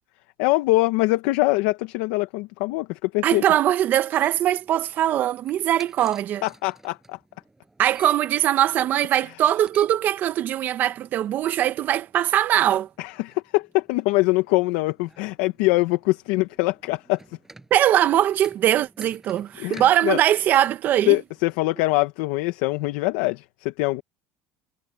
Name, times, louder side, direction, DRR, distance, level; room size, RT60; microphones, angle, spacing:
voice 1, 0.4-3.4 6.4-7.2 13.0-17.2 19.6-20.2 21.1-24.0, left 21 dB, 80° left, 1.3 m, -23 dB
voice 2, 3.2-6.4 7.8-12.9 17.7-21.2, right 12 dB, 45° right, 1.5 m, -21 dB
sound 1, 4.1-22.1, right 2 dB, 10° right, 7.9 m, -53 dB
cardioid pair, 125°, 4 cm